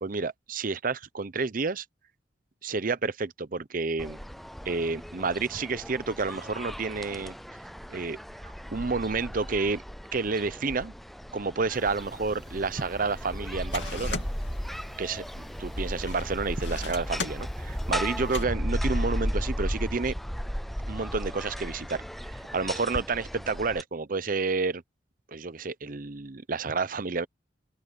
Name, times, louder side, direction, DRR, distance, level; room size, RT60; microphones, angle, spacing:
voice 1, 0.0-1.8 2.6-4.2 4.7-7.3 7.9-8.2 8.7-9.8 10.1-10.9 11.3-14.2 15.0-20.1 20.9-22.0 22.5-24.8 25.3-27.3, right 4 dB, 45° right, 0.7 m, -30 dB
sound 1, 4.0-23.8, equal, ahead, 0.3 m, -35 dB
sound 2, 11.7-18.5, left 4 dB, 65° left, 2.9 m, -42 dB
open air
head